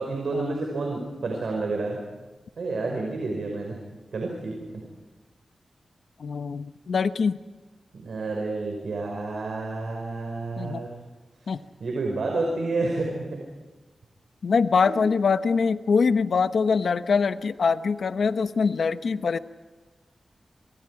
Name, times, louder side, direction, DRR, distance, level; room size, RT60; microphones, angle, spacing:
voice 1, 0.0-2.0 2.6-3.8 4.1-4.8 8.0-10.9 11.8-13.4 14.8-15.0, right 3 dB, 80° right, 0 dB, 5.5 m, -29 dB
voice 2, 6.2-7.4 10.6-10.9 11.5-11.6 14.4-19.4, left 5 dB, 75° left, 11 dB, 1.0 m, -23 dB
28.0 x 25.5 x 4.9 m, 1.2 s
cardioid pair, 65°, 0 cm